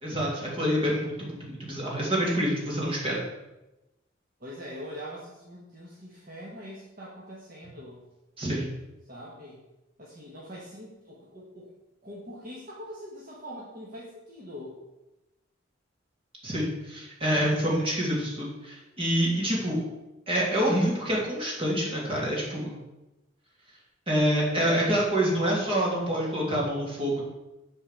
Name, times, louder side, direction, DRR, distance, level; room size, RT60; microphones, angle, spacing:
voice 1, 0.0-3.2 8.4-8.7 16.4-19.8 20.3-22.7 24.1-27.2, equal, 30° right, -4 dB, 3.0 m, -27 dB
voice 2, 4.4-8.0 9.1-9.6 10.0-11.7 12.0-14.8 24.3-24.9, equal, 45° right, -5 dB, 1.7 m, -43 dB
8.6 x 4.6 x 7.4 m, 0.99 s
head